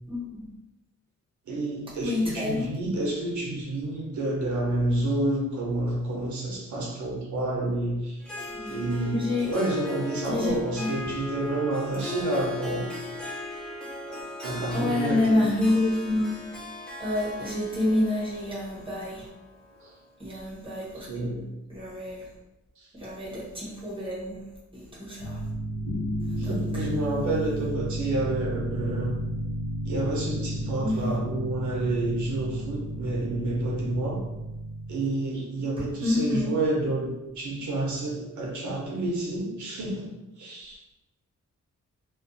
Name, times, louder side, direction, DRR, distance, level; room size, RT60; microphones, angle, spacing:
voice 1, 0.1-0.6 2.0-2.9 8.6-9.5 10.2-11.1 14.7-16.4 17.0-19.3 20.2-21.4 21.7-22.3 22.9-24.4 24.7-25.4 26.4-26.9 30.8-31.1 35.8-36.6, left 2 dB, 20° right, -7 dB, 0.8 m, -28 dB
voice 2, 1.5-8.2 8.7-12.9 14.1-15.5 19.8-19.9 21.0-21.4 22.8-22.9 26.4-29.2 29.8-34.3 34.9-40.1 40.4-41.0, right 2 dB, 80° right, -1 dB, 0.7 m, -29 dB
Harp, 8.2-20.1, left 3 dB, 5° left, 0.4 m, -38 dB
sound 1, 25.2-35.1, equal, 65° left, 0.6 m, -32 dB
2.5 x 2.2 x 2.6 m, 0.98 s
wide cardioid pair, 135°, 29 cm